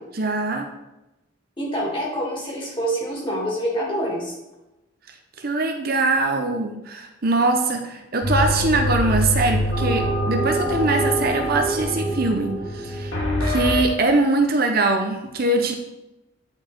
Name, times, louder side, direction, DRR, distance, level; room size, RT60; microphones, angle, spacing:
voice 1, 0.2-0.7 5.4-15.7, right 2 dB, 50° right, 5 dB, 0.7 m, -22 dB
voice 2, 1.6-4.3, right 1 dB, 25° left, -5 dB, 2.5 m, -26 dB
sound 1, 8.2-13.8, equal, 75° left, 2.1 m, -24 dB
9.5 x 4.7 x 4.4 m, 0.96 s
head